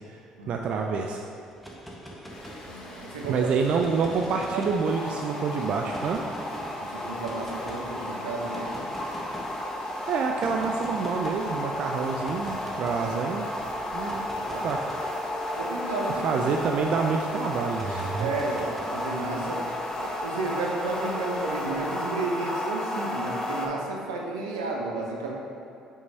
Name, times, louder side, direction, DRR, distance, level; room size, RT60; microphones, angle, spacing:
voice 1, 0.5-1.2 3.2-6.2 10.1-13.5 13.9-14.3 14.6-14.8 16.2-18.3, right 5 dB, 60° right, 2 dB, 0.4 m, -27 dB
sound 1, 1.5-3.1 3.7-5.2 5.9-6.7 7.2-7.8 8.5-9.6 10.4-11.5 12.2-13.1 13.9-16.8 17.7-19.3, equal, ahead, 1.3 m, -43 dB
Rain, 2.3-22.0, left 1 dB, 50° left, 1.4 m, -46 dB
voice 2, 2.6-3.5 3.9-4.1 4.5-4.7 6.8-8.9 14.0-14.7 15.6-16.4 18.2-19.7 20.0-25.4, right 3 dB, 85° right, -1 dB, 0.7 m, -33 dB
sound 2, 4.8-23.7, left 1 dB, 30° left, 0.9 m, -33 dB
5.5 x 4.7 x 4.1 m, 2.6 s
hypercardioid pair, 55°, 2 cm